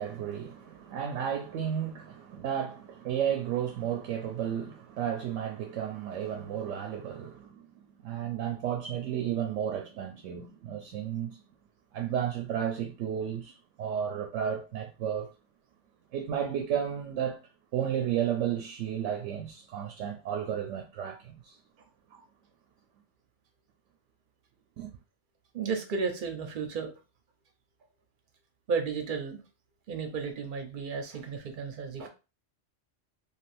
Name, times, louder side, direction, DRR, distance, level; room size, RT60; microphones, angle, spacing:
voice 1, 0.0-11.4 11.9-15.3 16.1-17.4 17.7-21.6 22.1-22.2 24.8-24.9, right 9 dB, 80° right, 0.9 m, -33 dB
voice 2, 25.5-26.9 28.7-29.4 29.9-32.1, right 5 dB, 50° right, 0.7 m, -33 dB
3.4 x 2.5 x 2.5 m
omnidirectional pair, 1.3 m